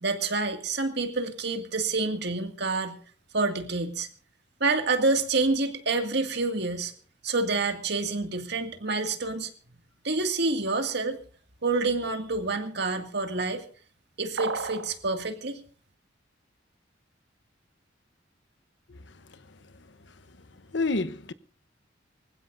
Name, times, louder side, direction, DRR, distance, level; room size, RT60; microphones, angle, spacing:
voice 1, 0.0-3.0 3.3-4.1 4.6-6.9 7.2-9.5 10.0-11.2 11.6-13.6 14.2-15.6, right 3 dB, 60° right, 2.2 m, -28 dB
sound 1, 14.4-15.0, right 4 dB, 80° right, 1.3 m, -32 dB
voice 2, 18.9-19.9 20.7-21.3, left 3 dB, 65° left, 0.9 m, -31 dB
24.5 x 16.0 x 2.6 m
head